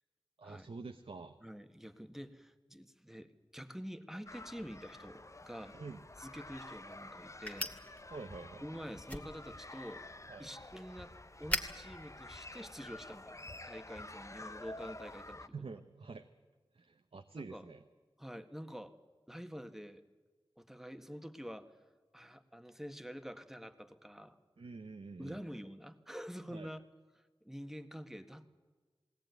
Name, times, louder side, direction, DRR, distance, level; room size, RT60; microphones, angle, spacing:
voice 1, 0.4-1.4 5.7-6.0 8.1-8.6 10.3-10.5 15.5-16.3 16.7-17.8 24.6-25.4 26.5-26.7, right 4 dB, 85° right, 7 dB, 0.9 m, -47 dB
voice 2, 1.4-5.8 6.2-7.7 8.6-10.0 10.4-15.5 17.3-17.7 18.2-18.9 19.3-20.0 20.6-21.8 22.1-24.4 25.2-26.8 27.1-28.5, equal, 5° right, 8 dB, 1.6 m, -47 dB
sound 1, 4.3-15.5, left 2 dB, 30° left, 0.9 m, -50 dB
sound 2, 6.1-13.2, left 1 dB, 15° left, 2.3 m, -45 dB
20.5 x 17.5 x 9.3 m, 1.4 s
wide cardioid pair, 50°, 9 cm